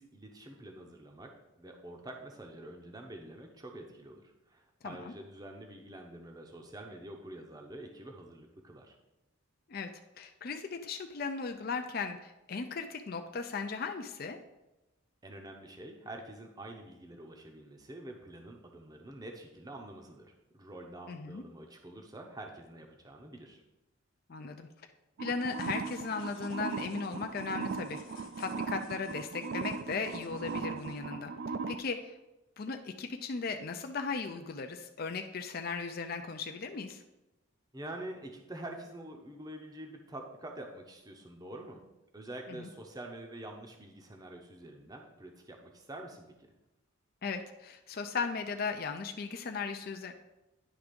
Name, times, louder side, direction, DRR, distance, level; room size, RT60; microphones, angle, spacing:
voice 1, 0.0-9.0 15.2-23.6 37.7-41.8 42.1-46.5, right 1 dB, 20° right, 2 dB, 0.7 m, -47 dB
voice 2, 10.2-14.4 21.1-21.4 24.3-24.7 25.2-31.3 31.7-32.1 32.6-37.0 42.6-42.7 47.2-50.1, left 4 dB, 45° left, 6 dB, 0.4 m, -37 dB
sound 1, 25.2-31.8, right 4 dB, 55° right, 0.3 m, -38 dB
sound 2, 25.4-31.0, left 5 dB, 75° left, 1.2 m, -58 dB
9.9 x 3.5 x 5.1 m, 0.97 s
head